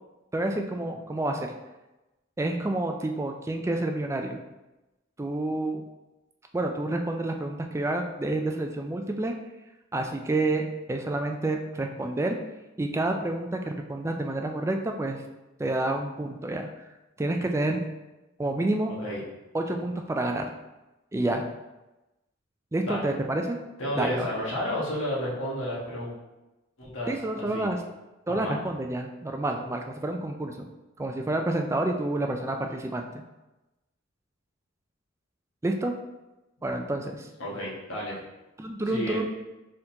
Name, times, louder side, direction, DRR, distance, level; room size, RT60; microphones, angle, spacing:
voice 1, 0.3-1.5 2.4-4.4 5.2-5.8 6.5-9.3 9.9-12.4 12.8-15.2 15.6-16.7 17.2-17.9 18.4-18.9 19.5-20.5 21.1-21.5 22.7-23.6 24.0-24.3 27.1-27.8 28.3-30.6 31.0-33.2 35.6-35.9 36.6-37.3 38.6-39.2, right 2 dB, 15° right, 4 dB, 0.3 m, -29 dB
voice 2, 23.8-26.1 26.8-27.7 28.3-28.6 37.4-38.2 38.9-39.2, equal, 70° left, -5 dB, 1.4 m, -32 dB
4.3 x 3.8 x 2.8 m, 1.0 s
head